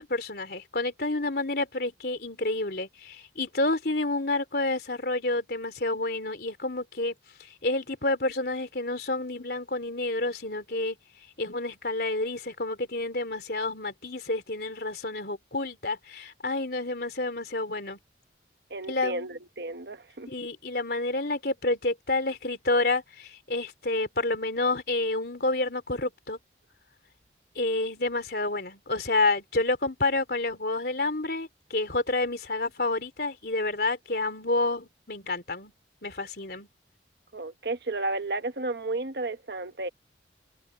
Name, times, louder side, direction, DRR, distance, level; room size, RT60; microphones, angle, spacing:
voice 1, 0.0-7.1 7.6-11.0 11.4-18.0 18.9-19.3 20.3-26.4 27.6-35.7 36.0-36.7, left 2 dB, 60° left, 3.9 m, -29 dB
voice 2, 18.7-20.3 37.3-39.9, right 2 dB, 60° right, 1.1 m, -33 dB
head